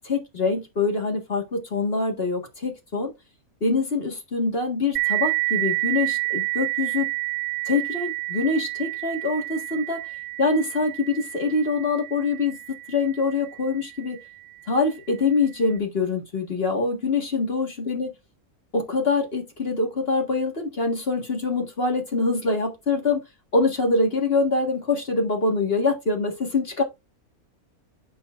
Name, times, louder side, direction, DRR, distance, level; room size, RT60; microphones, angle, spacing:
voice 1, 0.0-3.1 3.6-7.1 7.7-10.0 10.4-12.6 12.9-14.2 14.7-18.1 18.7-23.2 23.5-26.8, left 3 dB, 40° left, 1.9 m, -24 dB
sound 1, 5.0-14.2, right 26 dB, 65° right, 1.0 m, -29 dB
9.1 x 7.1 x 2.5 m
omnidirectional pair, 1.5 m